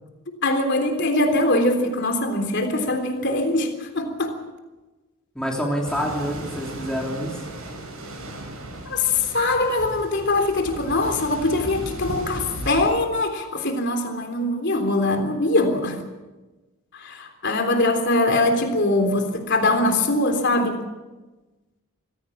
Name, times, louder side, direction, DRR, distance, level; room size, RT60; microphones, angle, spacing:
voice 1, 0.3-4.3 8.9-16.0 16.9-20.8, left 2 dB, 55° left, 5 dB, 3.6 m, -22 dB
voice 2, 5.3-7.5, equal, 5° left, -2 dB, 3.3 m, -27 dB
sound 1, 5.8-12.9, right 1 dB, 80° right, 7.3 m, -36 dB
24.5 x 16.5 x 7.3 m, 1.2 s
head